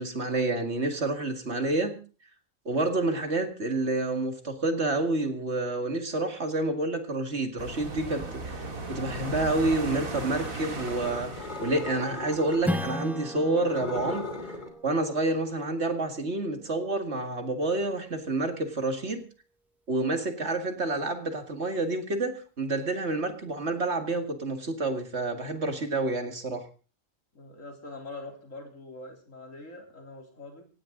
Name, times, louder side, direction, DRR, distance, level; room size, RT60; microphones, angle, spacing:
voice 1, 0.0-2.0 2.7-14.3 14.8-19.2 19.9-26.7, right 2 dB, 50° right, 6 dB, 2.4 m, -29 dB
sound 1, 7.6-12.8, right 2 dB, 75° right, 3.2 m, -37 dB
sound 2, 10.1-12.9 13.5-14.7, left 2 dB, 35° left, 2.8 m, -38 dB
Strum, 12.6-17.6, equal, ahead, 1.3 m, -37 dB
voice 2, 27.3-30.7, left 2 dB, 65° left, 3 dB, 4.0 m, -43 dB
17.5 x 16.5 x 3.9 m, 0.36 s
omnidirectional pair, 1.4 m